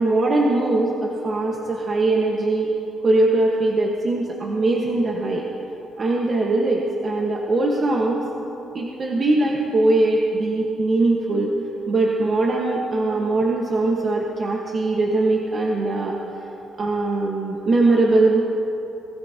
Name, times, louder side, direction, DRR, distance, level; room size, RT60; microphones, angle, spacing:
voice 1, 0.0-2.7 3.0-5.4 6.0-8.3 8.7-11.5 11.9-16.2 16.8-18.4, right 2 dB, 40° right, -2 dB, 1.5 m, -21 dB
24.5 x 16.0 x 3.0 m, 3.0 s
cardioid pair, 105°, 0 cm